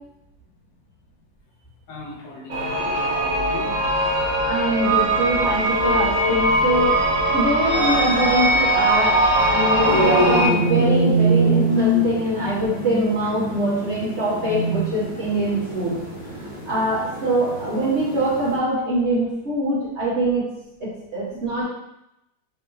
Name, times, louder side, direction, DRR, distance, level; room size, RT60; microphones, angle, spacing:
voice 1, 1.9-3.8 17.5-17.6, left 2 dB, 80° left, 0 dB, 1.4 m, -37 dB
sound 1, 2.5-10.5, right 1 dB, 60° right, 0.9 m, -20 dB
voice 2, 4.4-7.0 7.3-15.9 16.7-20.4 21.1-21.6, right 1 dB, 45° right, -9 dB, 1.3 m, -23 dB
sound 2, 9.8-18.6, right 1 dB, 45° left, 1.0 m, -24 dB
3.7 x 3.4 x 2.7 m, 0.86 s
omnidirectional pair, 1.9 m